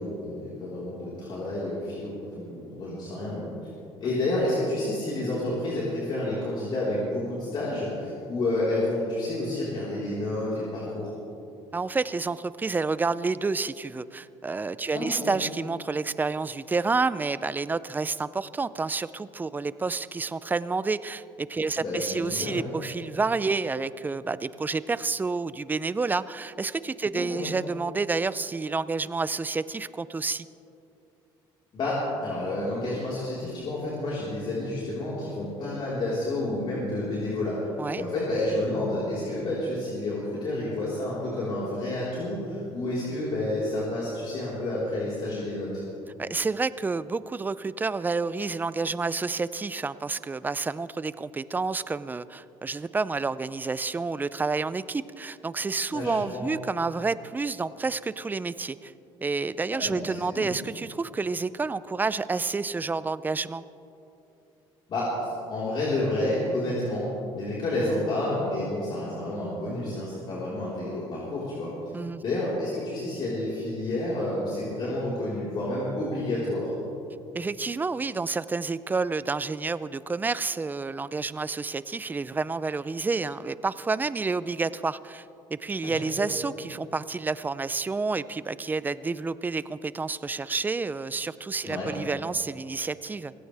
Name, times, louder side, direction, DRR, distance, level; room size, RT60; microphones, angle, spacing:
voice 1, 0.0-3.5 4.0-11.1 14.9-15.3 21.8-22.7 27.1-27.5 31.7-37.6 37.9-45.8 55.9-56.4 59.7-60.5 64.9-67.1 67.3-71.7 72.2-76.7 85.8-86.3 91.6-91.9, left 1 dB, 50° left, -8 dB, 4.3 m, -30 dB
voice 2, 11.7-30.5 37.8-38.0 46.2-58.9 59.2-63.6 71.9-72.2 77.3-85.2 85.5-93.3, right 4 dB, 15° right, 16 dB, 0.5 m, -29 dB
24.5 x 16.5 x 3.5 m, 2.8 s
cardioid pair, 110°, 10 cm